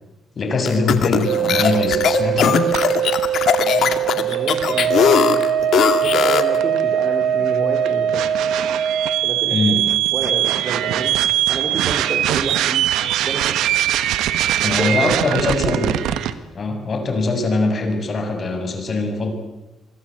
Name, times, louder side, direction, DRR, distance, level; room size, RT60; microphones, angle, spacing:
voice 1, 0.4-2.7 9.5-9.8 14.6-16.1 16.5-19.3, left 3 dB, 45° left, 5 dB, 7.2 m, -22 dB
sound 1, 0.7-6.6, left 8 dB, 70° left, 2.3 m, -19 dB
sound 2, 1.3-16.3, right 10 dB, 90° right, 1.5 m, -21 dB
voice 2, 3.5-5.7 6.0-8.3 9.2-9.8 10.1-11.2 11.5-12.9 13.2-13.6 14.6-15.8, right 3 dB, 35° right, 3 dB, 4.5 m, -29 dB
26.0 x 23.0 x 9.1 m, 1.0 s
cardioid pair, 90°, 0 cm